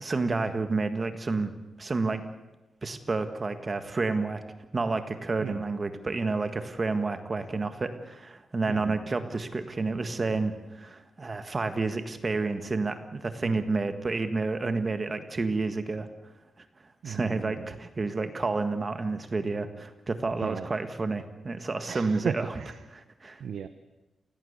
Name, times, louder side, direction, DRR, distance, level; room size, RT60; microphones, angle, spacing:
voice 1, 0.0-1.5 1.8-2.2 2.8-4.4 4.7-16.1 16.6-16.7 17.0-22.5 22.9-23.4, right 3 dB, 25° right, 9 dB, 1.6 m, -30 dB
voice 2, 8.7-9.0 13.4-13.6 17.0-17.7 20.4-20.7 21.9-22.8 23.4-23.7, right 7 dB, 65° right, 10 dB, 1.0 m, -36 dB
28.0 x 17.5 x 8.2 m, 1.1 s
wide cardioid pair, 165°, 0 cm